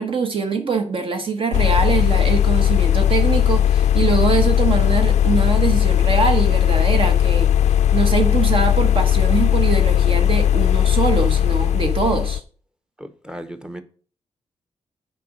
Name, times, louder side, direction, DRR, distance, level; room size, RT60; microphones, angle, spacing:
voice 1, 0.0-7.5 7.9-12.4, right 4 dB, 50° right, 1.1 m, -23 dB
sound 1, 1.5-12.4, left 10 dB, 80° left, 0.4 m, -17 dB
voice 2, 13.0-13.8, right 1 dB, 5° right, 0.8 m, -35 dB
6.7 x 4.9 x 6.3 m
wide cardioid pair, 140°, 12 cm